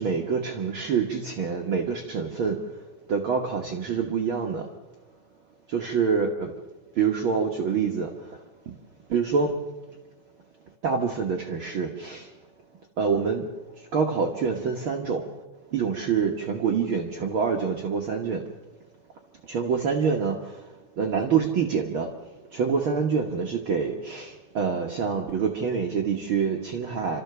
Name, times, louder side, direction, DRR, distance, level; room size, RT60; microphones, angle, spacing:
voice 1, 0.0-2.6 3.1-4.7 5.7-6.5 7.0-8.1 8.7-8.8 9.1-9.6 10.8-12.3 13.0-13.4 13.9-15.2 15.7-18.4 19.5-20.6 21.0-22.1 22.5-27.2, right 6 dB, 55° right, 2 dB, 1.6 m, -26 dB
29.5 x 13.5 x 6.8 m, 1.1 s
omnidirectional pair, 3.5 m